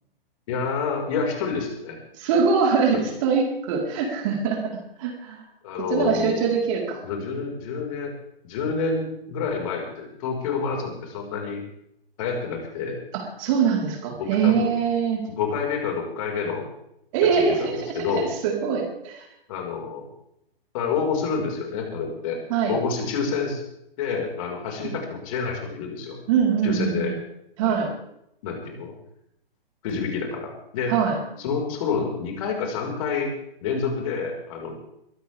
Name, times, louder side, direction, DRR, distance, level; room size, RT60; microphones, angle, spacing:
voice 1, 0.5-2.0 2.9-3.1 5.6-6.5 7.0-8.1 8.4-11.6 12.2-13.0 14.2-14.7 15.4-16.7 17.3-17.7 17.9-18.3 19.5-20.1 20.7-22.4 22.7-23.6 24.0-26.2 26.6-27.1 27.6-27.9 28.4-28.9 29.8-30.9 31.4-33.3 33.6-34.7, left 5 dB, 35° left, 1 dB, 5.1 m, -28 dB
voice 2, 2.2-5.4 5.9-7.0 13.1-15.2 17.1-19.3 22.5-22.8 24.8-24.9 26.3-27.1 27.6-27.9 30.9-31.2, right 6 dB, 35° right, 0 dB, 4.3 m, -23 dB
23.0 x 17.0 x 3.6 m, 0.78 s
figure-of-eight pair, 120°, 30 cm